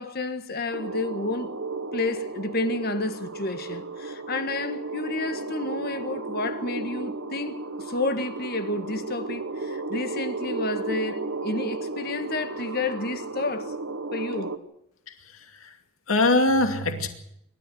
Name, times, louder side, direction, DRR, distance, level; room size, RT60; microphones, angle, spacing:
voice 1, 0.0-1.5 1.9-13.7 14.1-14.5, left 2 dB, 45° left, 1.7 m, -30 dB
sound 1, 0.7-14.6, right 3 dB, 75° right, 1.7 m, -34 dB
voice 2, 15.1-15.8 16.1-17.1, left 2 dB, 75° left, 2.5 m, -23 dB
27.0 x 14.0 x 7.9 m
head